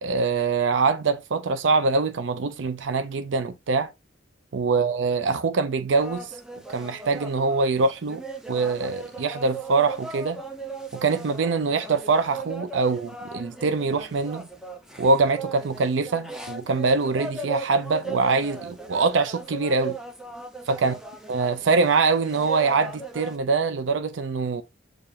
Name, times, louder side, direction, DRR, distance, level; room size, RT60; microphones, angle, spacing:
voice 1, 0.0-3.9 4.5-6.3 6.7-8.2 8.5-10.4 10.9-14.5 15.0-20.0 20.7-20.9 21.3-24.6, right 4 dB, 90° right, 0.5 m, -24 dB
sound 1, 5.9-23.4, right 3 dB, 5° right, 0.6 m, -38 dB
6.7 x 2.6 x 2.8 m
head